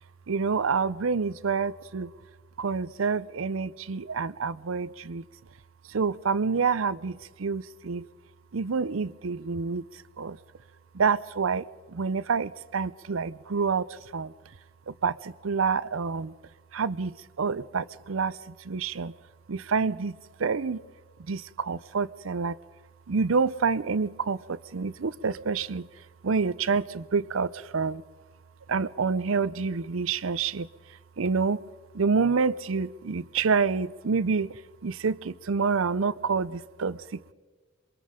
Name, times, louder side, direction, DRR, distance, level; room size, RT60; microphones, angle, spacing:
voice 1, 0.3-2.1 2.6-5.2 5.9-8.1 8.5-10.4 10.9-14.3 14.9-16.3 16.7-19.1 19.5-20.8 21.3-22.6 23.1-25.9 26.2-28.0 28.7-30.7 31.2-31.6 31.9-34.5 34.8-37.3, right 5 dB, 85° right, 18 dB, 0.6 m, -28 dB
27.5 x 23.5 x 5.1 m, 1.4 s
head